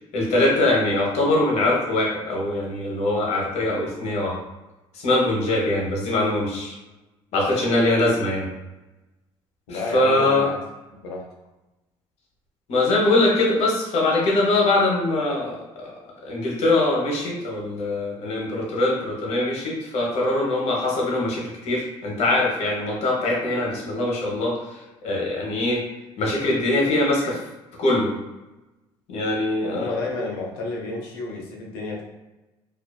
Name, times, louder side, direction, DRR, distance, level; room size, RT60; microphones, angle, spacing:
voice 1, 0.1-4.3 4.9-6.8 7.3-8.5 9.7-10.5 12.7-15.9 16.2-24.8 25.0-25.8 26.2-27.4 27.8-28.1 29.1-29.9, left 2 dB, 65° left, -2 dB, 0.9 m, -22 dB
voice 2, 9.7-10.6 10.9-11.2 29.6-32.0, left 2 dB, 90° left, -1 dB, 0.6 m, -31 dB
2.5 x 2.3 x 2.2 m, 1.1 s
supercardioid pair, 70°, 12 cm